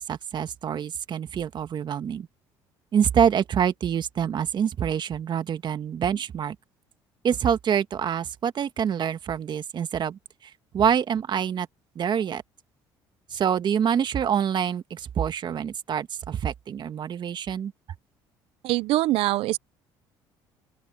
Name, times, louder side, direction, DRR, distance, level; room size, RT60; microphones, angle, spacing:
voice 1, 0.0-2.3 2.9-6.5 7.2-10.2 10.7-11.7 11.9-12.4 13.3-17.7, right 8 dB, 50° right, 1.6 m, -26 dB
voice 2, 18.6-19.6, right 16 dB, 70° right, 0.8 m, -23 dB
open air
supercardioid pair, 80°, 10 cm